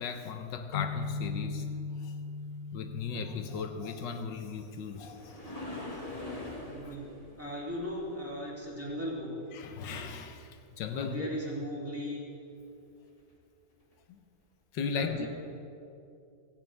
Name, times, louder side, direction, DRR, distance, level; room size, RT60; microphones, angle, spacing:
voice 1, 0.0-1.7 2.0-2.2 2.7-5.6 6.8-6.9 9.5-11.3 14.1-14.2 14.7-15.3, left 6 dB, 90° left, 7 dB, 1.6 m, -37 dB
sound 1, 0.7-4.2, left 4 dB, 60° left, 0.9 m, -38 dB
sound 2, 4.3-9.3 13.2-13.3 13.9-14.0, left 2 dB, 20° left, 1.9 m, -44 dB
voice 2, 6.6-9.4 10.9-12.2 14.8-15.3, equal, 10° right, -5 dB, 2.7 m, -38 dB
16.5 x 15.5 x 3.5 m, 2.6 s
omnidirectional pair, 1.9 m